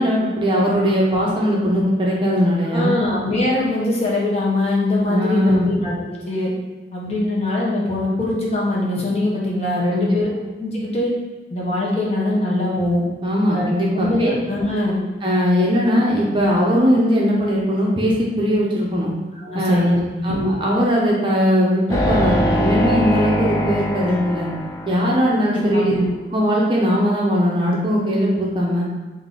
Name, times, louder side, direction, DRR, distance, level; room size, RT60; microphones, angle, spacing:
voice 1, 0.0-2.9 5.0-5.7 9.9-10.1 13.2-14.3 15.2-19.1 19.5-19.9 20.2-24.5 24.9-26.0 26.3-28.8, equal, 30° right, -4 dB, 0.6 m, -19 dB
voice 2, 2.7-6.5 6.9-10.3 10.6-11.1 11.5-13.0 13.5-13.7 13.9-15.0 19.4-20.3 25.5-26.1, left 1 dB, 35° left, -4 dB, 0.8 m, -22 dB
sound 1, 21.9-25.3, equal, 20° left, 0.4 m, -22 dB
3.6 x 2.6 x 3.7 m, 1.2 s
head